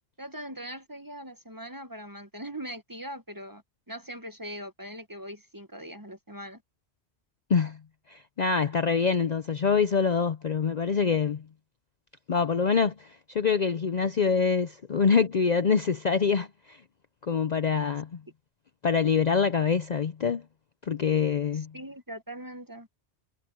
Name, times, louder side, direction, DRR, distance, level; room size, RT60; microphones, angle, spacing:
voice 1, 0.2-6.6 21.5-22.9, equal, 20° right, 1.0 m, -41 dB
voice 2, 8.1-11.4 12.3-16.8 17.2-18.2 18.8-20.4 20.9-21.7, left 5 dB, 45° left, 0.6 m, -25 dB
omnidirectional pair, 1.2 m